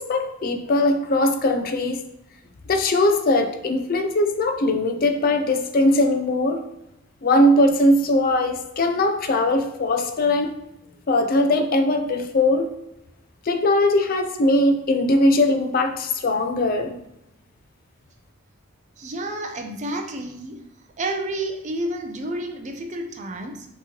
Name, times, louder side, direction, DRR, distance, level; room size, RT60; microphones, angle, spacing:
voice 1, 0.0-2.0 2.7-6.6 7.2-10.6 11.1-12.7 13.5-17.0, left 1 dB, 45° left, 6 dB, 0.4 m, -20 dB
voice 2, 19.0-20.6 21.0-23.7, right 1 dB, 35° right, 5 dB, 0.4 m, -30 dB
5.7 x 3.0 x 2.9 m, 0.83 s
head